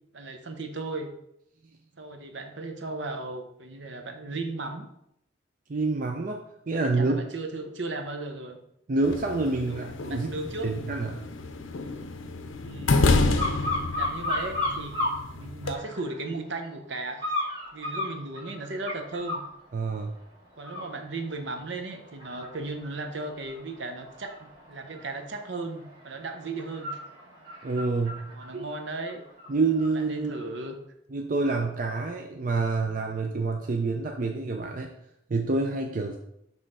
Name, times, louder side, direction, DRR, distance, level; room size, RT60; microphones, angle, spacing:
voice 1, 0.1-1.1 2.0-4.9 7.0-8.6 9.7-10.7 12.6-13.1 14.0-14.9 15.3-17.2 17.7-19.4 20.6-26.9 28.3-29.2 30.1-30.8, right 2 dB, 65° right, 5 dB, 0.8 m, -36 dB
voice 2, 5.7-6.4 6.7-7.2 8.9-10.3 10.6-11.2 19.7-20.1 27.6-28.7 29.5-30.3 31.1-34.9 35.3-36.2, right 3 dB, 45° right, 2 dB, 0.5 m, -27 dB
sound 1, 9.0-15.7, left 3 dB, 85° left, 0.6 m, -28 dB
sound 2, 13.4-15.2 15.6-16.3 17.2-19.5 20.0-20.2 20.6-29.9 30.3-30.4, left 2 dB, 25° right, 1.7 m, -34 dB
5.5 x 3.1 x 5.4 m, 0.77 s
head